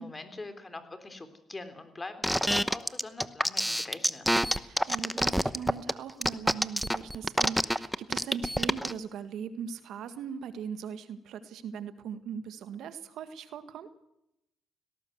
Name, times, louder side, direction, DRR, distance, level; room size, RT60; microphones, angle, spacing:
voice 1, 0.0-4.4, left 2 dB, 20° left, 9 dB, 3.6 m, -43 dB
sound 1, 2.2-8.9, equal, ahead, 0.9 m, -26 dB
voice 2, 4.5-13.9, right 7 dB, 80° right, 11 dB, 1.7 m, -40 dB
18.5 x 17.5 x 8.0 m, 0.83 s
cardioid pair, 90°, 0 cm